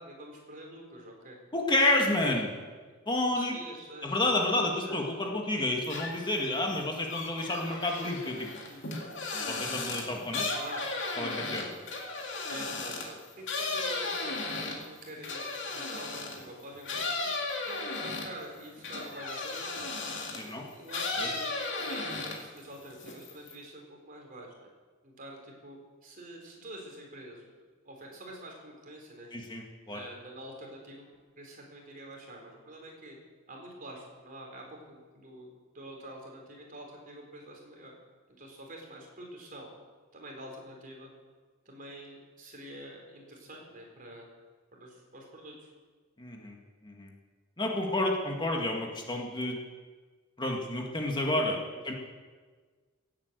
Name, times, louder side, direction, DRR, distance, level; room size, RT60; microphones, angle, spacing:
voice 1, 0.0-1.4 2.3-2.7 3.3-4.1 4.5-5.0 6.5-6.7 8.7-9.1 10.6-10.9 11.5-11.9 12.5-17.3 17.6-19.9 20.4-21.5 21.7-24.7 25.0-27.5 27.8-29.3 29.9-31.1 31.4-33.2 33.5-35.5 35.7-37.9 38.3-39.7 40.1-41.1 41.7-44.3 44.7-45.7 51.7-51.8, right 1 dB, 45° right, 0 dB, 3.9 m, -47 dB
voice 2, 1.5-2.5 3.1-3.6 4.0-8.5 9.3-10.5 11.2-11.6 20.3-20.7 21.2-21.3 29.3-30.0 46.2-46.6 46.8-47.1 47.6-49.6 50.4-51.6 51.8-51.9, left 2 dB, 20° left, 1 dB, 1.8 m, -30 dB
sound 1, 5.8-6.4 6.7-16.4 16.8-20.5 20.9-22.6 22.9-23.5, left 3 dB, 60° left, 2.5 m, -35 dB
17.5 x 8.9 x 8.0 m, 1.5 s
head